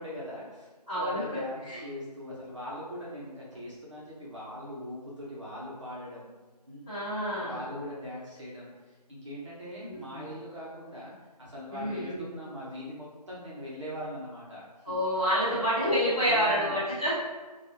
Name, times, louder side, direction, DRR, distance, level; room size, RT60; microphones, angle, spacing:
voice 1, 0.0-0.7 0.9-6.3 6.7-6.8 7.4-11.1 11.4-14.6 14.9-15.0 15.3-15.6 16.2-17.1, left 1 dB, 45° right, -7 dB, 0.8 m, -41 dB
voice 2, 0.9-1.2 1.7-1.8 6.8-7.6 9.8-10.2 11.7-12.3 14.8-17.1, equal, 10° left, -20 dB, 1.5 m, -28 dB
4.5 x 2.4 x 2.7 m, 1.3 s
figure-of-eight pair, 170°, 21 cm